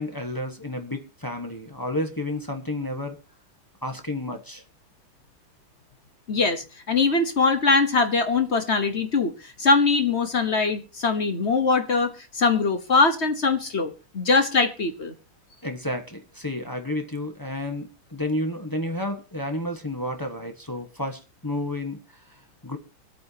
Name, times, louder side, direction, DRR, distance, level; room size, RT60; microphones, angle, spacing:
voice 1, 0.0-3.2 3.8-4.6 15.6-22.0 22.6-22.8, left 1 dB, 15° left, 1.0 m, -31 dB
voice 2, 6.3-15.1, left 4 dB, 40° left, 1.1 m, -22 dB
24.0 x 8.7 x 2.8 m
omnidirectional pair, 2.2 m